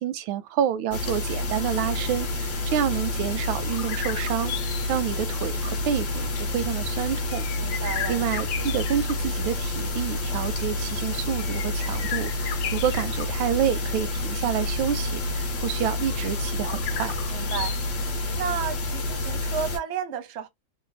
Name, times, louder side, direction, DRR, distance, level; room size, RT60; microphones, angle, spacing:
voice 1, 0.0-7.5 8.1-17.1, right 10 dB, 85° right, 1.4 m, -28 dB
sound 1, 0.9-19.8, left 2 dB, 45° left, 0.8 m, -29 dB
sound 2, 1.6-18.7, left 9 dB, 70° left, 1.0 m, -38 dB
voice 2, 7.6-8.2 17.3-17.8 18.3-20.5, right 8 dB, 60° right, 0.7 m, -32 dB
3.4 x 2.1 x 3.8 m
omnidirectional pair, 2.1 m